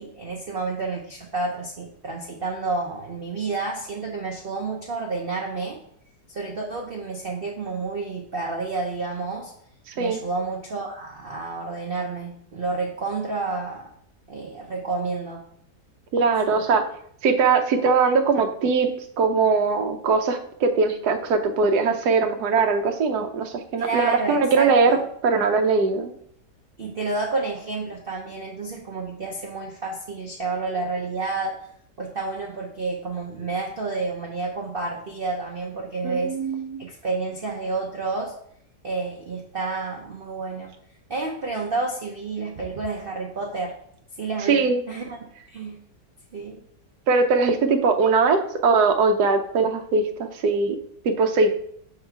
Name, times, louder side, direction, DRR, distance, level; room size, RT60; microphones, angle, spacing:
voice 1, 0.0-5.8 6.3-9.5 10.0-13.9 14.3-15.4 16.5-16.6 23.8-25.0 26.8-31.5 32.0-36.3 36.8-38.3 38.8-40.7 41.1-43.7 44.2-45.8 46.3-46.6, right 3 dB, 45° right, -2 dB, 0.8 m, -30 dB
voice 2, 16.1-16.8 17.2-18.9 19.2-25.0 25.2-26.1 36.0-36.8 44.5-44.8 47.1-50.8 51.0-51.5, right 4 dB, 70° right, 5 dB, 1.3 m, -21 dB
5.8 x 3.9 x 4.5 m, 0.65 s
omnidirectional pair, 1.8 m